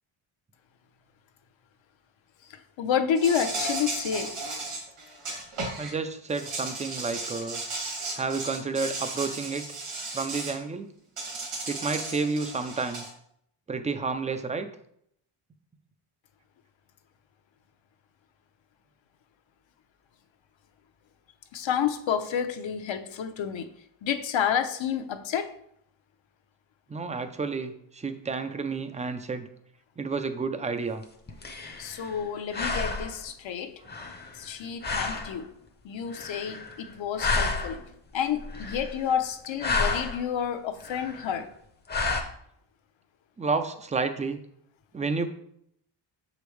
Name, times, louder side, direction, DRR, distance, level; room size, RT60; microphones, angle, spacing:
voice 1, 2.5-4.3 21.5-23.7 24.0-25.5 31.8-33.8 34.3-35.5 35.8-37.8 38.1-41.5, left 8 dB, 65° left, 7 dB, 0.7 m, -29 dB
Insect, 3.2-5.9 6.3-10.6 11.2-13.1, right 2 dB, 80° right, 2.4 m, -35 dB
voice 2, 5.8-7.6 8.2-9.7 10.1-10.9 11.7-13.0 13.7-14.7 26.9-29.5 30.0-31.0 43.4-44.4 44.9-45.3, right 4 dB, 15° right, 9 dB, 0.3 m, -30 dB
sound 1, 31.0-32.3 32.5-33.3 33.9-34.5 34.8-35.4 36.1-36.9 37.2-37.9 38.4-39.1 39.4-40.2 40.8-41.4 41.9-42.2, left 3 dB, 20° left, 0.6 m, -31 dB
6.8 x 5.1 x 3.2 m, 0.70 s
wide cardioid pair, 145°, 50 cm